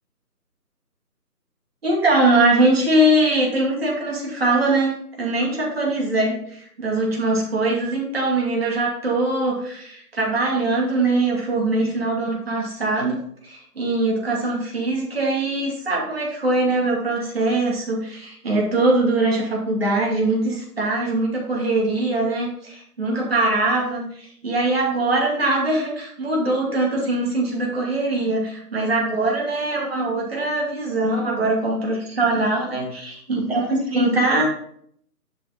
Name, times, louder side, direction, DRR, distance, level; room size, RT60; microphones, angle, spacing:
voice 1, 1.8-34.5, right 2 dB, 40° right, -2 dB, 2.6 m, -22 dB
11.5 x 4.0 x 4.3 m, 0.63 s
figure-of-eight pair, 165°, 48 cm